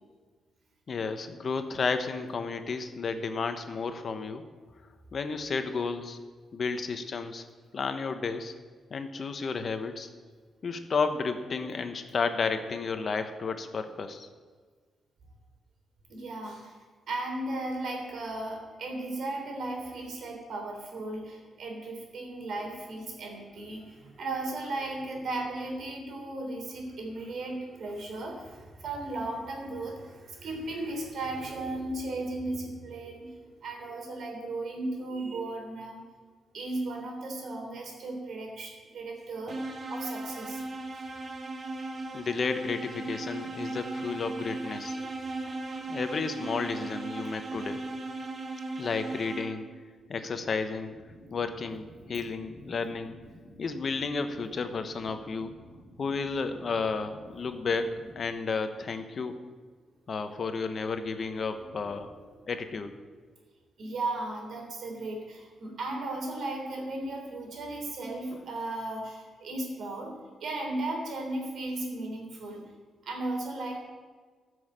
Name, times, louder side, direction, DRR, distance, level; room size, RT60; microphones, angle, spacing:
voice 1, 0.9-4.4 5.1-6.2 6.5-7.5 7.7-8.5 8.9-10.1 10.6-14.3 42.1-45.0 45.9-47.8 48.8-49.7 50.1-51.0 51.3-53.1 53.6-55.5 56.0-59.4 60.1-62.1 62.5-62.9 68.3-68.4, left 4 dB, 50° left, 8 dB, 1.1 m, -32 dB
voice 2, 16.1-16.8 17.1-33.3 33.6-36.0 36.5-39.6 39.9-40.6 45.0-45.1 61.5-61.6 63.8-70.1 70.4-72.6 73.0-73.7, right 2 dB, 70° right, 1 dB, 3.3 m, -36 dB
sound 1, 39.5-49.8, right 2 dB, 40° right, 1.2 m, -37 dB
sound 2, 50.9-58.3, equal, 10° right, 3.3 m, -52 dB
14.0 x 6.4 x 7.5 m, 1.5 s
cardioid pair, 95°, 0 cm